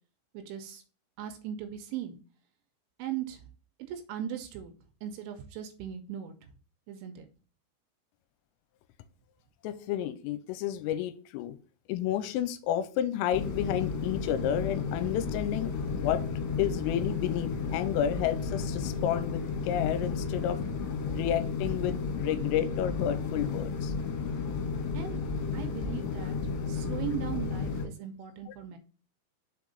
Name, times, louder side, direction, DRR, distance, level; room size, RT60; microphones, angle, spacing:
voice 1, 0.3-0.8 1.2-2.2 3.0-3.4 3.8-4.7 5.0-6.3 6.9-7.3 24.9-25.2 25.5-26.4 26.7-28.8, right 10 dB, 80° right, 3.0 m, -38 dB
voice 2, 9.6-11.6 11.9-16.2 16.6-20.6 21.1-23.9 28.5-28.6, left 11 dB, 85° left, 3.3 m, -31 dB
sound 1, 13.3-27.9, left 5 dB, 70° left, 3.7 m, -33 dB
6.8 x 4.7 x 4.0 m
omnidirectional pair, 5.9 m